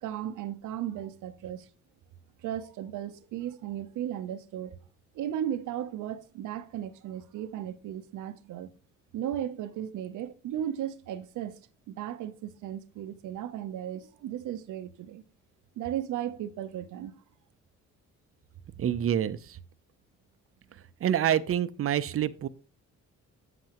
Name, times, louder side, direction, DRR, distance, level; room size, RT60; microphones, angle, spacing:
voice 1, 0.0-1.7 2.4-4.7 5.1-8.7 9.1-11.6 11.9-15.2 15.8-17.1, right 11 dB, 80° right, 0.8 m, -35 dB
voice 2, 18.8-19.6 21.0-22.5, right 10 dB, 50° right, 0.6 m, -27 dB
8.3 x 7.8 x 3.0 m
cardioid pair, 90°, 30 cm